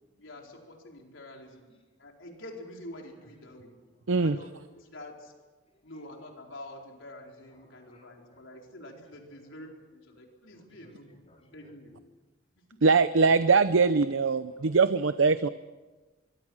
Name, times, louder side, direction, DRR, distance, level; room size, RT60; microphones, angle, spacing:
voice 1, 0.2-1.7 2.0-3.7 4.2-5.3 5.8-11.9 12.7-12.8, left 1 dB, 80° left, 1 dB, 4.4 m, -47 dB
voice 2, 3.6-4.1 7.5-8.6 9.4-9.5 10.5-12.0 13.2-13.5 14.5-14.8, left 1 dB, 30° left, 0 dB, 4.4 m, -60 dB
voice 3, 12.8-15.5, right 4 dB, 90° right, 12 dB, 0.7 m, -22 dB
25.0 x 23.0 x 6.4 m, 1.2 s
head